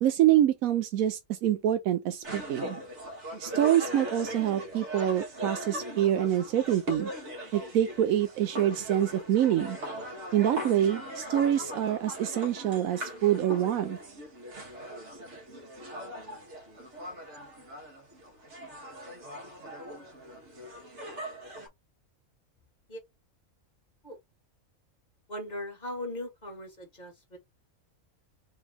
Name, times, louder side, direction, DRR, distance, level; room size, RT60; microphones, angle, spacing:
voice 1, 0.0-2.8 3.4-7.1 7.5-9.8 10.3-14.0, right 11 dB, 85° right, 1.0 m, -26 dB
sound 1, 2.2-21.7, equal, 55° right, 1.8 m, -40 dB
voice 2, 25.3-27.4, left 1 dB, 30° left, 2.0 m, -39 dB
4.0 x 3.4 x 3.5 m
omnidirectional pair, 1.4 m